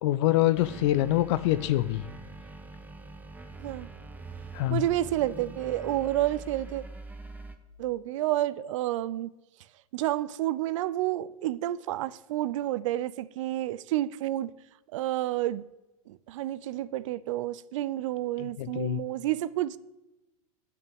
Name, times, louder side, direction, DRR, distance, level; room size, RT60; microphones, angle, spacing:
voice 1, 0.0-2.0 4.5-4.8 18.4-19.0, left 15 dB, 50° left, 0.4 m, -25 dB
sound 1, 0.5-7.6, right 3 dB, 10° right, 1.0 m, -44 dB
voice 2, 4.7-6.8 7.8-9.3 9.9-14.5 14.9-15.6 16.1-19.8, right 14 dB, 55° right, 0.5 m, -30 dB
10.5 x 5.9 x 7.9 m
figure-of-eight pair, 90°, 19 cm